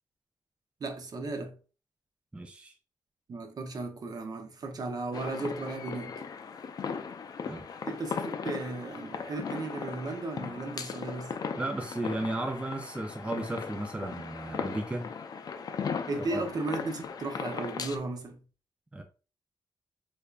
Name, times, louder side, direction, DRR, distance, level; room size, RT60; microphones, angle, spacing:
voice 1, 0.8-1.5 3.3-6.1 7.8-11.3 16.1-18.4, right 3 dB, 50° right, 0.7 m, -35 dB
voice 2, 2.3-2.7 7.5-7.7 11.6-15.1 16.2-16.4 18.9-19.0, right 1 dB, 15° right, 0.4 m, -34 dB
sound 1, 5.1-18.0, left 6 dB, 50° left, 0.4 m, -38 dB
3.6 x 3.3 x 2.4 m
cardioid pair, 110°, 8 cm